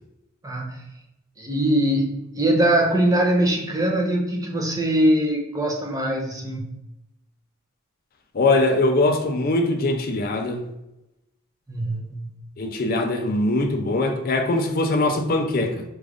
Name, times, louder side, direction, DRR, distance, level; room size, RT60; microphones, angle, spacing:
voice 1, 0.4-0.8 1.4-6.7 11.7-12.4, right 1 dB, 15° right, 0.5 m, -22 dB
voice 2, 8.3-10.7 12.6-15.8, left 2 dB, 40° left, 0.4 m, -22 dB
4.7 x 2.5 x 3.4 m
head